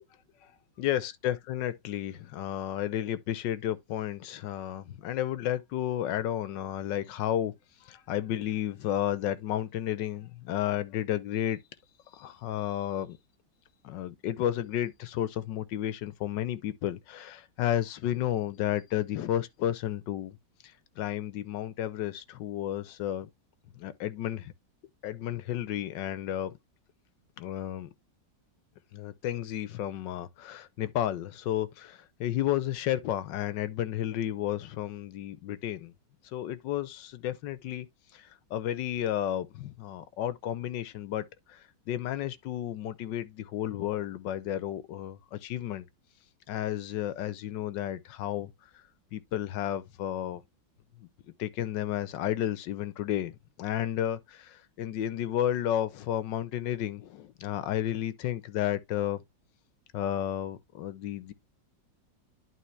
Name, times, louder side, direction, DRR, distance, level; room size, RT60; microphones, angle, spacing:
voice 1, 0.8-7.5 7.8-11.6 12.1-13.2 13.8-20.4 21.0-23.3 23.7-24.5 25.0-26.5 27.4-27.9 28.9-35.9 36.2-37.9 38.1-45.9 46.5-48.5 49.1-50.4 51.4-59.2 59.9-61.3, left 11 dB, 80° left, 1.4 m, -32 dB
11.0 x 3.8 x 3.2 m
omnidirectional pair, 2.0 m